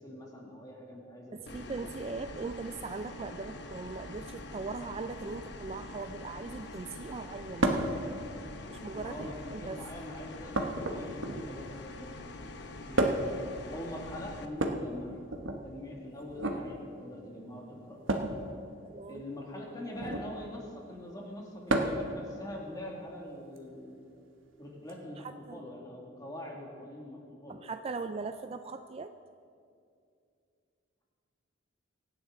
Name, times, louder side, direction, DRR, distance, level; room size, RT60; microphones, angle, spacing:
voice 1, 0.0-1.8 9.0-12.6 12.8-15.1 15.6-18.3 19.1-24.0 24.6-27.6, left 1 dB, 20° left, -1 dB, 2.2 m, -44 dB
voice 2, 1.3-7.7 8.7-9.8 18.9-19.2 25.2-25.6 27.5-29.1, right 4 dB, 30° right, 9 dB, 0.3 m, -40 dB
sound 1, 1.5-14.5, left 2 dB, 60° left, 0.9 m, -45 dB
sound 2, 7.6-7.9 9.0-9.5 10.5-11.6 13.0-13.4 14.5-15.6 16.3-16.6 18.1-18.4 19.9-20.3 21.7-22.1 23.6-23.7 24.9-25.0, right 1 dB, 80° right, 1.1 m, -30 dB
24.5 x 9.5 x 3.8 m, 2.5 s
head